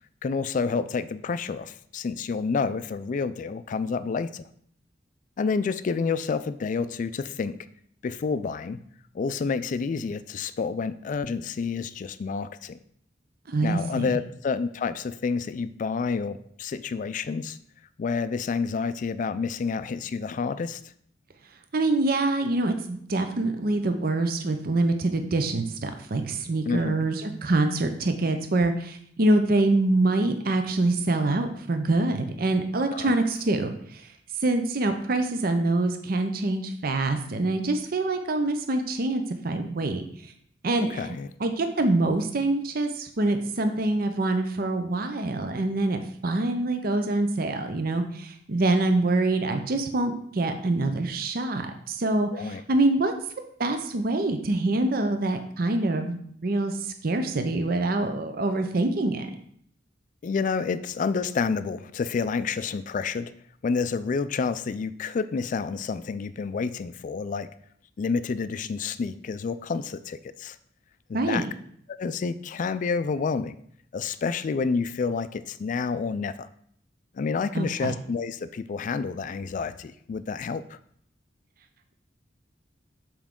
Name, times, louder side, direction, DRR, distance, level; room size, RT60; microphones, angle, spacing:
voice 1, 0.2-4.4 5.4-7.6 8.0-8.8 9.1-12.8 13.6-17.6 18.0-20.8 26.7-27.0 32.9-33.1 40.8-41.3 52.3-52.6 60.2-63.3 63.6-67.5 68.0-70.6 71.1-71.5 71.9-73.6 73.9-76.5 77.1-80.8, left 5 dB, 45° left, 14 dB, 0.3 m, -29 dB
voice 2, 13.5-14.1 21.7-34.1 34.4-40.0 40.6-41.1 41.4-53.1 53.6-59.3 71.1-71.5 77.5-77.9, right 2 dB, 55° right, 6 dB, 0.6 m, -25 dB
7.1 x 4.5 x 3.7 m, 0.66 s
head